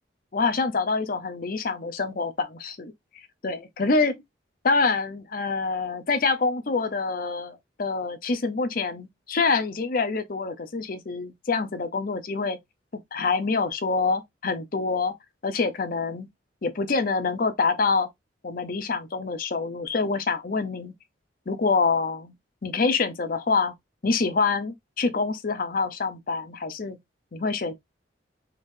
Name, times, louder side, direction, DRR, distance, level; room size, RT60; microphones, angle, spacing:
voice 1, 0.3-2.9 3.4-4.2 4.6-12.6 12.9-15.1 15.4-16.3 16.6-18.1 18.4-20.9 21.5-22.3 22.6-23.7 24.0-27.0 27.3-27.7, left 4 dB, 50° left, 0.6 m, -26 dB
3.7 x 3.3 x 2.6 m
head